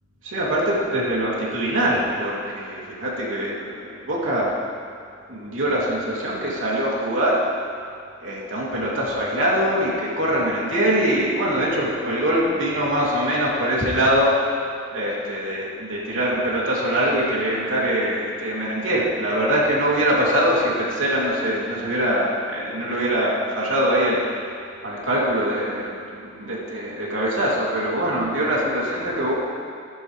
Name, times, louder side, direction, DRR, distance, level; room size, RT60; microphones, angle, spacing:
voice 1, 0.2-3.7 4.1-4.5 5.3-7.4 8.2-14.6 14.9-24.2 24.8-29.3, equal, 75° right, -6 dB, 3.1 m, -23 dB
14.0 x 13.0 x 3.4 m, 2.3 s
head